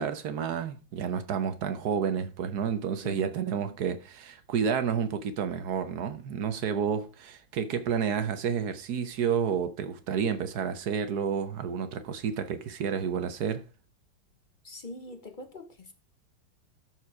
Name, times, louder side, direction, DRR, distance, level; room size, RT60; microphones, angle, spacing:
voice 1, 0.0-13.7, right 7 dB, 60° right, 1.3 m, -30 dB
voice 2, 14.6-15.9, left 3 dB, 45° left, 0.6 m, -43 dB
12.5 x 4.8 x 4.7 m
omnidirectional pair, 2.1 m